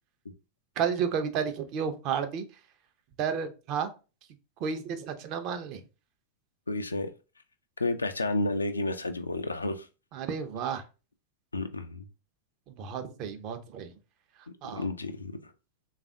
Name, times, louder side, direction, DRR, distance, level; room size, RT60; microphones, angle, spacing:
voice 1, 0.8-2.4 3.2-3.9 4.6-5.8 10.1-10.8 12.7-13.9 14.6-14.9, right 7 dB, 40° right, 0.5 m, -32 dB
voice 2, 6.7-7.1 7.8-9.9 11.5-12.1 14.7-15.3, left 2 dB, 80° left, 0.3 m, -31 dB
3.3 x 2.4 x 3.6 m
figure-of-eight pair, 90°, 0 cm